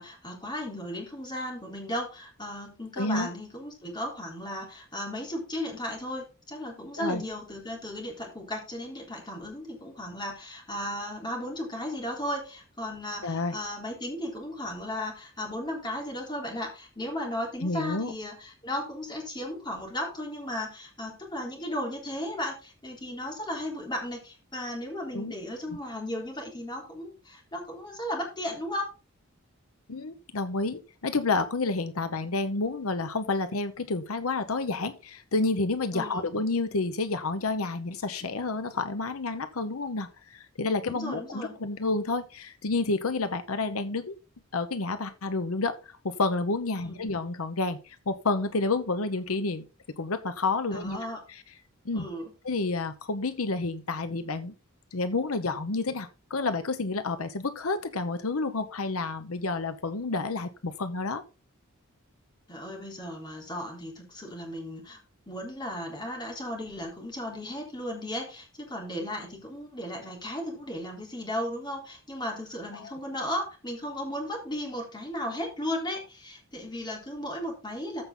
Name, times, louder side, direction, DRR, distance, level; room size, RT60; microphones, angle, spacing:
voice 1, 0.0-28.9 35.9-36.3 40.9-41.5 46.7-47.0 50.7-51.2 51.9-52.3 62.5-65.0 65.3-78.0, left 1 dB, 20° left, 0 dB, 3.7 m, -35 dB
voice 2, 3.0-3.3 7.0-7.2 13.2-13.5 17.6-18.1 25.1-25.3 29.9-44.1 44.5-49.6 50.0-51.4 51.8-52.1 52.4-54.5 54.9-61.2 72.7-72.9, left 3 dB, 85° left, 10 dB, 0.9 m, -30 dB
14.5 x 5.8 x 3.8 m, 0.31 s
head